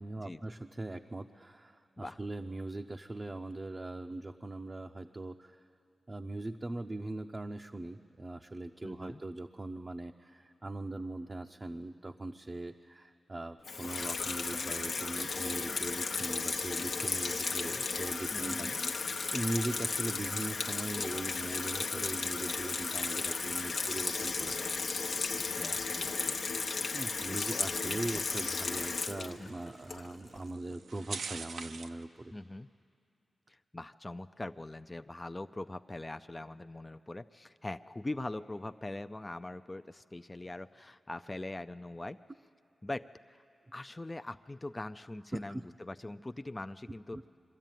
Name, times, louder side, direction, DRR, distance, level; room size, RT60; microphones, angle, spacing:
voice 1, 0.0-5.6 6.1-18.9 19.3-24.6 26.9-32.3 45.3-45.6 47.1-47.2, right 2 dB, 35° right, 3 dB, 0.6 m, -40 dB
voice 2, 8.8-9.2 18.3-18.8 25.4-26.7 27.2-28.2 29.4-29.5 32.3-32.7 33.5-42.2 42.8-43.4 43.7-47.2, left 2 dB, 25° left, 9 dB, 0.4 m, -42 dB
Water tap faucet / Sink (filling or washing), 13.6-30.4, left 4 dB, 75° left, 0.8 m, -34 dB
sound 1, 21.8-32.0, right 5 dB, 80° right, 0.6 m, -50 dB
23.0 x 13.0 x 9.1 m, 2.5 s
cardioid pair, 55°, 0 cm